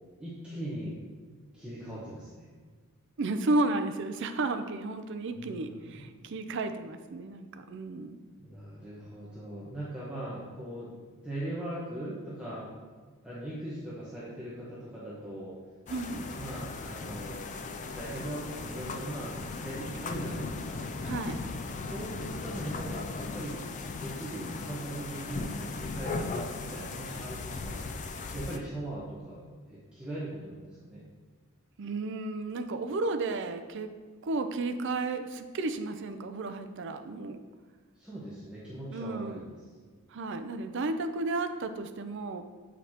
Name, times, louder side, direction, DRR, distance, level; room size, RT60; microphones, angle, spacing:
voice 1, 0.2-1.0 1.5-2.5 5.3-6.2 8.4-10.9 11.2-12.7 13.2-15.6 16.4-17.4 17.9-20.9 21.8-23.7 24.0-27.8 28.3-29.4 29.7-31.0 37.9-39.5, right 1 dB, 5° right, -10 dB, 1.0 m, -40 dB
voice 2, 3.2-8.2 15.9-16.3 21.0-21.4 31.8-33.9 34.2-37.4 38.9-39.4 40.1-42.4, right 2 dB, 55° right, 8 dB, 0.4 m, -33 dB
sound 1, 15.9-28.6, left 3 dB, 35° left, 0.3 m, -37 dB
7.8 x 5.1 x 2.9 m, 1.5 s
head